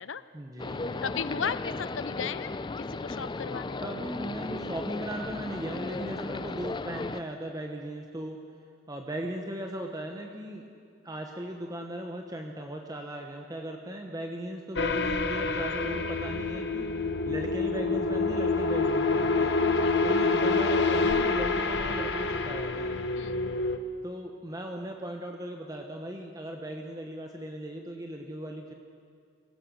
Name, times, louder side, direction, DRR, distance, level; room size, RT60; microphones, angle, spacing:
voice 1, 0.3-1.2 3.8-8.4 8.9-10.7 11.0-16.9 17.2-19.6 20.0-23.0 24.0-28.7, right 1 dB, 20° right, 2 dB, 1.1 m, -37 dB
sound 1, 0.6-7.2, left 3 dB, 25° left, 0.4 m, -36 dB
voice 2, 1.0-2.5 2.9-3.8 16.1-16.2 19.8-20.2 23.2-23.7, left 7 dB, 80° left, 15 dB, 0.6 m, -36 dB
sound 2, 14.8-23.8, left 3 dB, 60° left, 1.1 m, -27 dB
24.0 x 17.0 x 6.5 m, 2.2 s
head